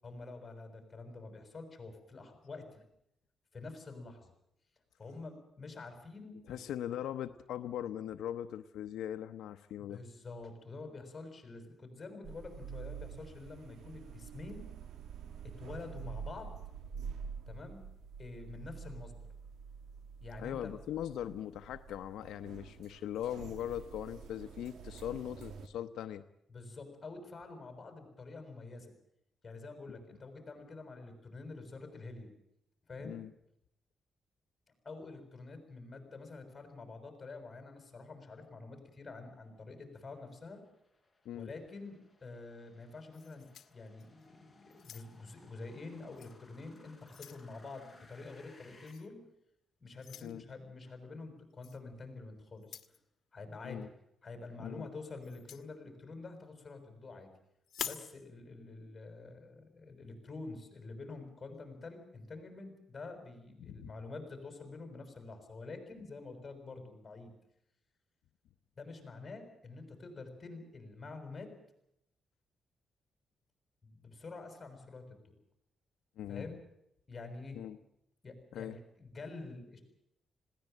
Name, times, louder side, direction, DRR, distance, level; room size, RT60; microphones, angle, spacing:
voice 1, 0.0-2.7 3.5-4.3 5.0-6.6 9.8-14.7 15.4-16.5 17.5-17.8 18.2-19.3 20.2-20.7 26.5-28.9 29.4-32.3 32.9-33.2 34.8-40.6 41.3-49.2 49.8-52.8 53.3-53.9 54.2-57.3 57.8-67.3 68.8-71.5 73.8-75.3 76.3-76.6 77.1-77.6 78.2-79.8, left 3 dB, 30° left, 6 dB, 6.6 m, -47 dB
voice 2, 6.5-10.0 20.4-26.2 33.0-33.3 41.2-41.5 50.2-50.4 53.6-53.9 54.6-54.9 63.6-63.9 76.2-76.5 77.5-77.8 78.5-78.8, left 11 dB, 90° left, 8 dB, 0.8 m, -40 dB
sound 1, 12.2-25.7, right 6 dB, 80° right, 2.0 m, -47 dB
sound 2, 39.4-48.9, left 2 dB, 10° left, 4.5 m, -64 dB
sound 3, 43.1-44.3 44.7-45.4 46.2-46.3 46.8-47.5 48.9-49.1 50.0-50.3 51.6-51.8 52.6-53.0 55.2-55.7 57.6-58.1, left 9 dB, 70° left, 1.4 m, -46 dB
20.5 x 17.0 x 9.1 m, 0.78 s
cardioid pair, 105°, 0 cm